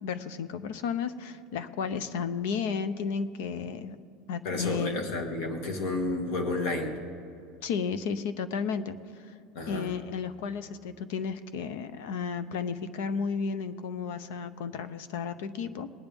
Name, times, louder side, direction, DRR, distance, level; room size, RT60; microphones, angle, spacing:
voice 1, 0.0-4.0 4.3-5.0 7.6-9.0 9.7-15.9, left 6 dB, 80° left, 12 dB, 0.7 m, -33 dB
voice 2, 4.4-6.9 9.5-9.9, left 2 dB, 60° left, 3 dB, 2.0 m, -31 dB
20.5 x 10.0 x 3.5 m, 2.5 s
cardioid pair, 165°, 0 cm